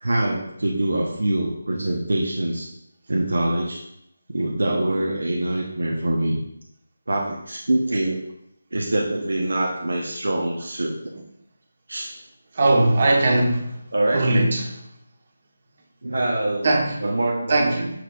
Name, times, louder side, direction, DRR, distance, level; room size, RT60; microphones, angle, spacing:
voice 1, 0.0-2.7 3.1-3.8 4.3-6.4 7.1-8.2 8.7-11.0 11.9-12.1 13.9-14.3 16.0-16.7 17.0-17.8, right 1 dB, 65° right, 1.1 m, -24 dB
voice 2, 12.6-13.7 14.1-14.7 16.6-17.0 17.5-17.9, right 2 dB, 40° right, 1.4 m, -19 dB
6.8 x 6.1 x 2.5 m
figure-of-eight pair, 155°, 0 cm